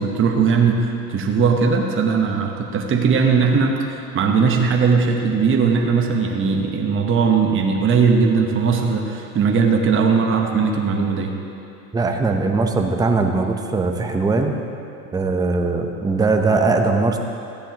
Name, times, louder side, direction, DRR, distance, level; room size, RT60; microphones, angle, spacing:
voice 1, 0.0-11.3, right 5 dB, 30° right, 2 dB, 1.0 m, -19 dB
voice 2, 11.9-14.5 15.1-17.2, right 3 dB, 10° right, 4 dB, 0.7 m, -20 dB
14.0 x 10.0 x 3.0 m, 2.7 s
supercardioid pair, 105°, 44 cm